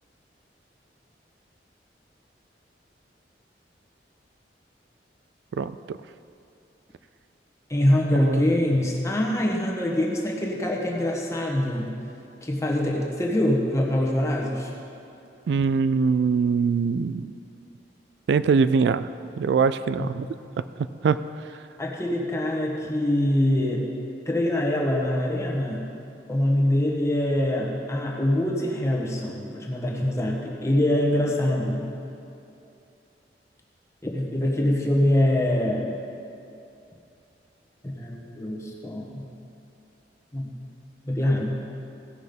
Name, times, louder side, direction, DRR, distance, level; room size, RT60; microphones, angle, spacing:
voice 1, 5.5-6.0 8.2-8.4 15.5-17.4 18.3-19.1 19.4-20.3 21.0-21.2, right 5 dB, 70° right, 14 dB, 0.3 m, -22 dB
voice 2, 7.7-11.9 12.4-14.7 20.0-20.1 21.8-23.9 24.2-25.8 26.3-31.9 34.0-36.0 37.8-39.2 40.3-40.5 41.0-41.5, left 1 dB, 15° left, -1 dB, 1.4 m, -24 dB
16.5 x 6.2 x 5.2 m, 2.6 s
head